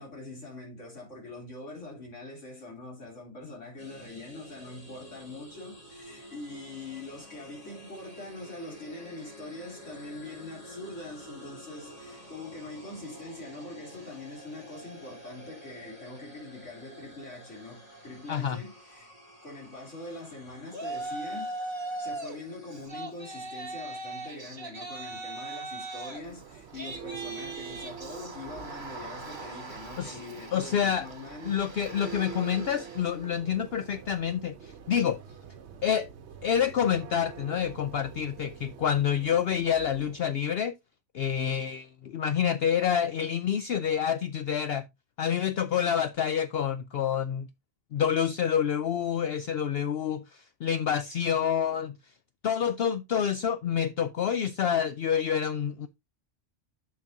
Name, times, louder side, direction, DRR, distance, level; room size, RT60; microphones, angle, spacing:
voice 1, 0.0-19.1 19.4-21.5 22.0-31.6, left 2 dB, 90° left, 3.6 m, -43 dB
sound 1, 3.8-22.9, equal, 30° left, 3.2 m, -49 dB
voice 2, 18.3-18.6 30.0-30.2 30.5-31.1 31.4-35.2 35.8-36.1 36.4-40.7 41.1-44.8 45.2-47.5 47.9-51.9 52.4-55.9, left 8 dB, 60° left, 0.7 m, -28 dB
Yell, 20.7-22.4 22.7-33.2, right 2 dB, 40° right, 1.9 m, -40 dB
Church bell, 26.0-40.3, right 7 dB, 65° right, 1.1 m, -45 dB
10.5 x 6.6 x 2.7 m
omnidirectional pair, 1.2 m